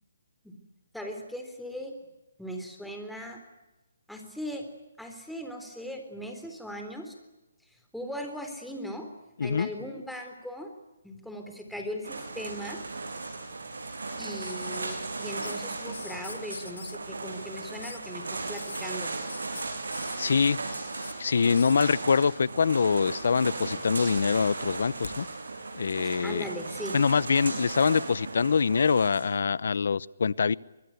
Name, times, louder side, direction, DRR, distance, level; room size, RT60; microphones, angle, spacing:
voice 1, 0.9-1.9 2.4-3.4 4.1-4.7 5.0-7.1 7.9-9.1 9.4-10.7 11.0-12.8 14.2-19.1 26.0-27.0, equal, ahead, 4 dB, 3.7 m, -38 dB
sound 1, 12.0-29.2, right 3 dB, 85° right, 7.2 m, -36 dB
sound 2, 14.4-15.6 15.9-17.0 17.8-18.1 18.5-18.8 19.3-21.1 21.6-21.8 22.9-23.5 23.8-25.2 26.6-26.7, left 4 dB, 85° left, 1.7 m, -44 dB
voice 2, 20.2-20.6 21.2-25.3 25.7-26.5 26.9-30.5, left 5 dB, 65° left, 22 dB, 0.8 m, -24 dB
24.0 x 21.5 x 9.5 m, 1.0 s
hypercardioid pair, 160°, 0 cm